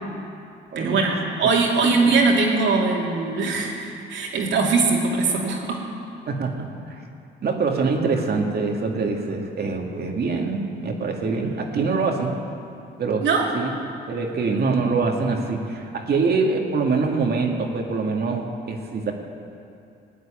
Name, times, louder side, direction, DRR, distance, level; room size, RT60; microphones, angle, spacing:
voice 1, 0.7-5.8 13.2-13.5, right 4 dB, 70° right, -1 dB, 2.9 m, -21 dB
voice 2, 6.3-7.0 7.4-12.4 13.0-13.3 13.5-13.7 14.1-19.1, right 4 dB, 55° right, 1 dB, 2.1 m, -24 dB
16.5 x 9.5 x 8.9 m, 2.5 s
cardioid pair, 90°, 20 cm